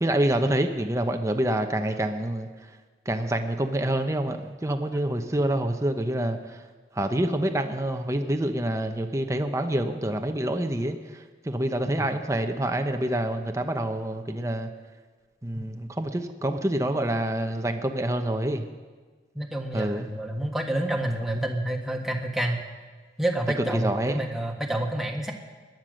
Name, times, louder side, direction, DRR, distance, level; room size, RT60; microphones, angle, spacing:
voice 1, 0.0-2.5 3.1-6.6 6.9-14.7 15.4-18.6 19.7-20.1 23.7-24.3, right 1 dB, 15° right, 5 dB, 0.9 m, -27 dB
voice 2, 19.3-22.6 23.2-25.3, right 1 dB, ahead, 1 dB, 1.5 m, -28 dB
20.0 x 10.5 x 6.4 m, 1.4 s
head